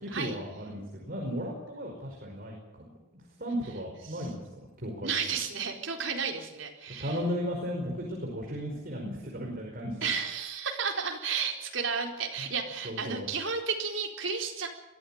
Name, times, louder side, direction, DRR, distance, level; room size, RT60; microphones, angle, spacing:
voice 1, 0.0-4.4 4.8-5.1 6.9-10.1 12.8-13.3, equal, 50° right, 0 dB, 5.2 m, -35 dB
voice 2, 5.0-7.2 10.0-14.7, right 5 dB, 75° right, 2 dB, 4.3 m, -32 dB
23.0 x 15.5 x 8.9 m, 0.98 s
head